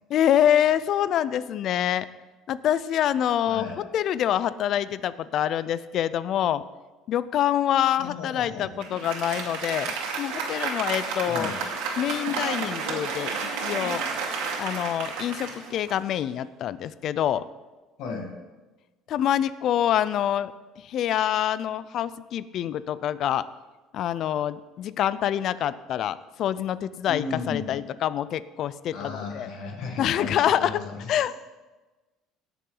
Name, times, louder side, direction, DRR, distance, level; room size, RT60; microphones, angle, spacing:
voice 1, 0.1-2.1 2.5-3.7 3.9-6.6 7.1-11.5 12.0-13.3 13.6-14.0 14.6-17.4 19.1-20.5 20.8-23.5 23.9-29.5 30.0-30.8 31.1-31.3, left 10 dB, 55° left, 16 dB, 0.4 m, -26 dB
voice 2, 3.5-3.8 8.0-8.7 11.3-11.6 18.0-18.3 27.1-27.7 28.9-31.1, left 4 dB, 70° left, 1 dB, 2.0 m, -34 dB
Applause, 8.8-16.4, right 5 dB, 90° right, 2.3 m, -31 dB
18.5 x 6.9 x 3.9 m, 1.2 s
cardioid pair, 125°, 0 cm